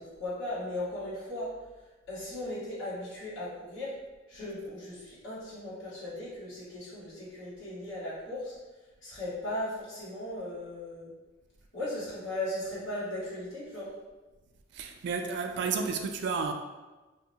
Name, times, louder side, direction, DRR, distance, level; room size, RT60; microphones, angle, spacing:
voice 1, 0.0-1.5 2.1-3.9 4.3-8.5 9.0-11.1 11.7-13.9, left 1 dB, 85° left, 1.5 m, -37 dB
voice 2, 14.7-16.5, right 5 dB, 65° right, 0.3 m, -31 dB
2.6 x 2.2 x 3.9 m
head